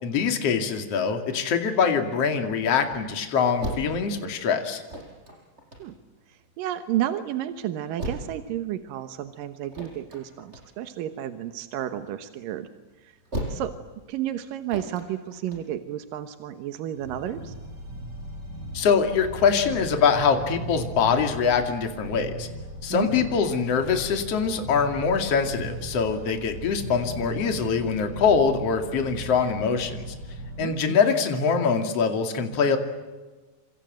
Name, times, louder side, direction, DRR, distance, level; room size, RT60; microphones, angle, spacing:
voice 1, 0.0-4.8 18.7-22.5 22.8-30.1 30.6-32.8, left 6 dB, 50° left, 5 dB, 3.4 m, -23 dB
sound 1, 2.9-16.8, right 1 dB, 20° right, 6.2 m, -40 dB
voice 2, 6.3-12.7 13.0-13.1 13.5-13.7 14.1-17.5 22.9-23.1 30.6-31.0, right 12 dB, 85° right, 9 dB, 2.9 m, -31 dB
sound 2, 17.0-30.6, right 1 dB, 65° right, 8.0 m, -38 dB
28.5 x 27.0 x 7.8 m, 1.2 s
omnidirectional pair, 3.9 m